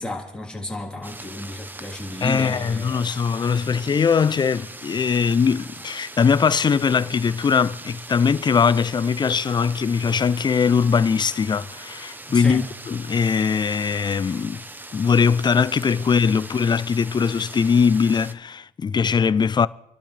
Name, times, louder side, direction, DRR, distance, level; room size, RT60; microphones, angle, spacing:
voice 1, 0.0-3.5 12.3-12.6, left 2 dB, 5° left, 3.6 m, -32 dB
sound 1, 1.0-18.3, right 2 dB, 10° right, 0.8 m, -40 dB
voice 2, 2.2-14.6 14.9-19.7, left 6 dB, 25° left, 0.4 m, -21 dB
27.5 x 12.0 x 3.3 m
cardioid pair, 110°, 17 cm